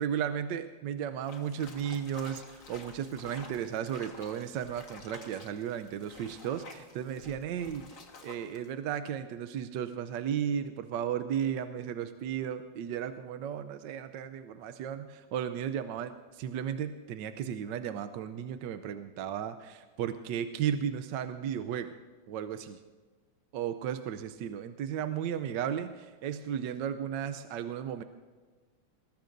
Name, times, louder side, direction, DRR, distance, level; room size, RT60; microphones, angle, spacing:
voice 1, 0.0-7.9 8.2-21.9 22.3-22.8 23.5-28.0, right 9 dB, 70° right, 9 dB, 1.2 m, -34 dB
sound 1, 1.2-8.7, left 3 dB, 45° left, 1.7 m, -51 dB
21.0 x 19.0 x 2.6 m, 1.4 s
omnidirectional pair, 2.2 m